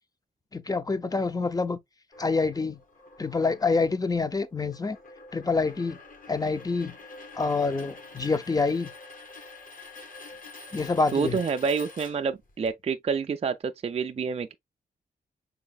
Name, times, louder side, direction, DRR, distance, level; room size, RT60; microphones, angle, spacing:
voice 1, 0.5-1.8 2.2-2.8 3.2-5.0 5.3-6.0 6.3-6.9 7.3-8.9 10.7-11.4, left 4 dB, 20° left, 0.6 m, -26 dB
sound 1, 2.1-12.7, left 3 dB, 55° left, 1.6 m, -47 dB
voice 2, 11.1-14.5, right 5 dB, 40° right, 0.4 m, -28 dB
5.4 x 4.0 x 2.2 m
cardioid pair, 80°, 17 cm